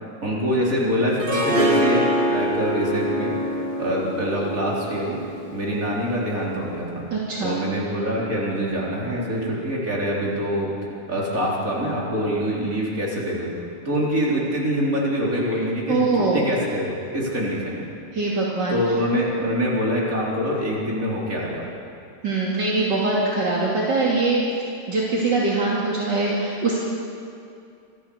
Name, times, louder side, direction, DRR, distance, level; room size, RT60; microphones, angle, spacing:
voice 1, 0.2-3.4 3.8-5.2 5.5-7.0 7.4-13.5 13.8-17.8 18.7-21.6, equal, 50° right, -4 dB, 4.5 m, -25 dB
Harp, 1.2-6.3, equal, 30° right, 2.3 m, -25 dB
voice 2, 7.1-7.6 15.9-16.4 18.1-18.8 22.2-24.4 24.9-26.8, right 3 dB, 75° right, -5 dB, 3.2 m, -22 dB
25.5 x 14.5 x 7.1 m, 2.5 s
omnidirectional pair, 1.9 m